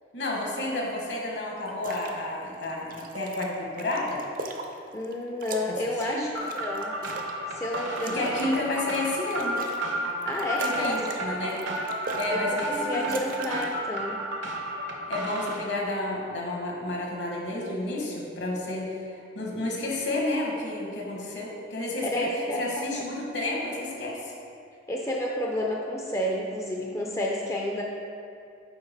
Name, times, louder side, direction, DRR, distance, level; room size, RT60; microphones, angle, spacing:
voice 1, 0.1-4.2 5.6-6.3 8.1-9.6 10.6-11.6 12.1-13.2 15.1-24.3, left 2 dB, 65° left, -2 dB, 1.3 m, -31 dB
sound 1, 1.7-2.1 2.5-5.1 5.4-7.4 7.7-9.9 10.2-11.2 11.5-12.4 12.6-13.8, right 2 dB, 50° right, 0.5 m, -40 dB
voice 2, 4.9-6.9 7.5-8.3 10.3-11.0 12.3-12.4 12.8-14.2 22.0-22.6 23.0-23.1 24.9-27.8, left 1 dB, 15° left, -1 dB, 0.4 m, -30 dB
sound 2, 6.4-15.6, right 1 dB, 75° right, 0.9 m, -32 dB
7.9 x 4.8 x 3.5 m, 2.5 s
head